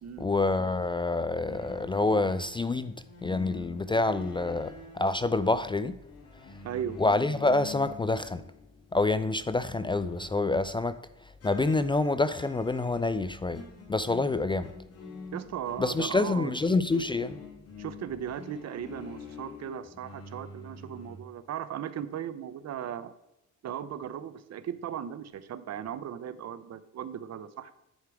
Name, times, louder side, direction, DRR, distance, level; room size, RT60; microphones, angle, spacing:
voice 1, 0.2-2.9 3.2-6.0 7.0-8.4 8.9-11.0 11.4-13.6 13.9-14.7 15.8-17.4, left 3 dB, 15° left, 0.3 m, -27 dB
sound 1, 1.5-9.0 9.3-10.8 11.4-21.2, left 4 dB, 50° left, 2.3 m, -47 dB
voice 2, 6.6-7.0 15.3-16.6 17.8-23.1 23.6-27.7, right 9 dB, 60° right, 0.8 m, -37 dB
10.5 x 4.8 x 4.7 m
cardioid pair, 90°, 30 cm